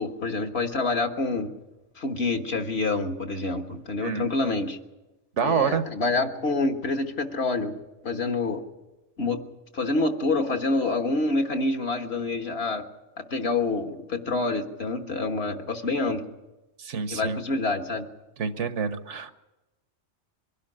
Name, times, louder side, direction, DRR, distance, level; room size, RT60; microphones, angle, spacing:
voice 1, 0.0-1.5 2.0-4.8 5.4-7.7 8.0-8.6 9.2-9.4 9.7-12.9 13.3-16.3 17.1-18.0, left 3 dB, 65° left, 5 dB, 1.6 m, -27 dB
voice 2, 5.4-5.8 16.8-17.4 18.4-19.3, right 6 dB, 85° right, 11 dB, 1.3 m, -27 dB
23.0 x 11.5 x 9.9 m, 1.1 s
omnidirectional pair, 1.2 m